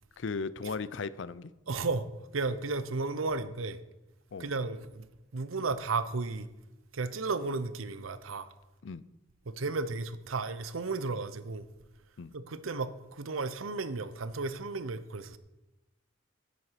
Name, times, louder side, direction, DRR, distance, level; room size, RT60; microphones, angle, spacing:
voice 1, 0.2-1.5 4.3-4.5 8.8-9.0 12.2-12.3, left 4 dB, 65° left, 0.5 m, -36 dB
voice 2, 1.7-2.1 2.3-3.8 4.4-5.1 5.3-6.5 6.9-8.5 9.5-11.6 12.3-15.4, right 3 dB, 90° right, 0.7 m, -34 dB
9.6 x 9.3 x 5.8 m
head